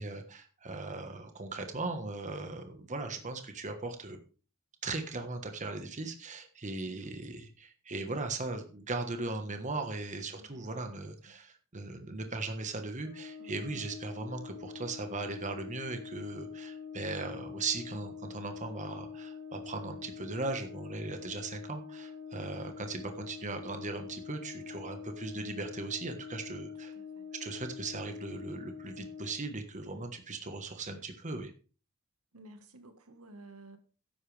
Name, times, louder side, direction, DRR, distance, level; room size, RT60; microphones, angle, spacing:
voice 1, 0.0-4.2 4.8-26.9 27.4-31.5, right 3 dB, 35° right, 1.3 m, -38 dB
voice 2, 6.9-7.4 8.0-8.2 10.4-10.8 11.3-11.4 13.4-13.9 26.9-27.3 32.3-33.8, right 2 dB, 80° right, 1.6 m, -53 dB
Brass instrument, 13.0-29.4, left 6 dB, 15° right, 7.8 m, -45 dB
13.0 x 10.5 x 3.4 m
head